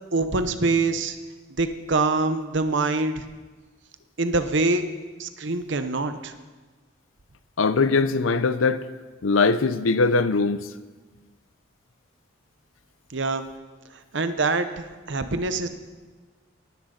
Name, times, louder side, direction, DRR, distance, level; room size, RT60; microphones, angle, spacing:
voice 1, 0.1-1.2 1.5-3.2 4.2-4.8 5.2-6.3 13.1-13.4 14.1-15.7, right 3 dB, 65° right, 0.9 m, -24 dB
voice 2, 7.6-8.9 9.2-10.7, left 4 dB, 90° left, 0.6 m, -21 dB
18.5 x 10.5 x 3.9 m
head